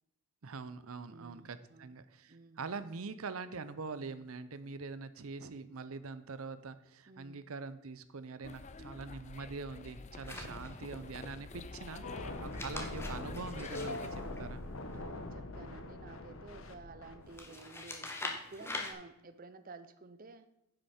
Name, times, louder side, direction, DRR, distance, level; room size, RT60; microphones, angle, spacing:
voice 1, 0.4-14.6, right 4 dB, 85° right, 13 dB, 0.7 m, -44 dB
voice 2, 1.1-1.9 2.3-2.6 7.1-7.4 10.3-10.8 14.9-20.4, right 3 dB, 40° right, 11 dB, 0.6 m, -52 dB
sound 1, 8.4-14.1, left 3 dB, 35° left, 0.5 m, -48 dB
sound 2, 10.2-11.0 12.4-14.9 17.3-18.9, left 2 dB, 10° left, 1.3 m, -43 dB
sound 3, 12.0-17.4, left 2 dB, 75° left, 1.2 m, -42 dB
10.0 x 8.0 x 4.4 m, 0.84 s
head